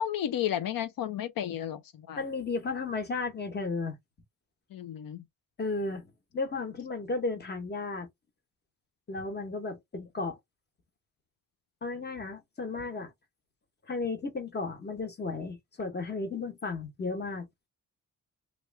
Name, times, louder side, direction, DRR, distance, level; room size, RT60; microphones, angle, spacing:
voice 1, 0.0-2.2 4.7-5.2, left 10 dB, 85° left, 0.6 m, -32 dB
voice 2, 2.2-4.0 5.6-8.1 9.1-10.4 11.8-13.1 13.9-17.5, left 3 dB, 30° left, 1.0 m, -34 dB
3.1 x 2.5 x 3.3 m
wide cardioid pair, 115°, 33 cm